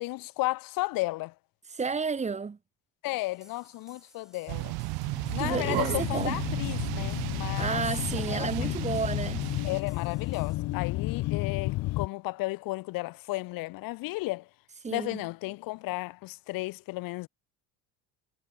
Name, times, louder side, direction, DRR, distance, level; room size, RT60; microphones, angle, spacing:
voice 1, 0.0-1.3 3.0-4.7 5.3-7.8 8.1-8.5 9.6-14.5 14.9-17.3, left 21 dB, 65° left, 1.0 m, -34 dB
voice 2, 1.7-2.6 5.4-6.4 7.6-9.4 14.8-15.2, right 5 dB, 20° right, 1.7 m, -31 dB
sound 1, 3.2-10.6, equal, ahead, 2.8 m, -59 dB
sound 2, 4.5-9.8, right 28 dB, 85° right, 1.2 m, -34 dB
sound 3, 5.0-12.1, left 18 dB, 50° left, 0.5 m, -32 dB
cardioid pair, 135°, 37 cm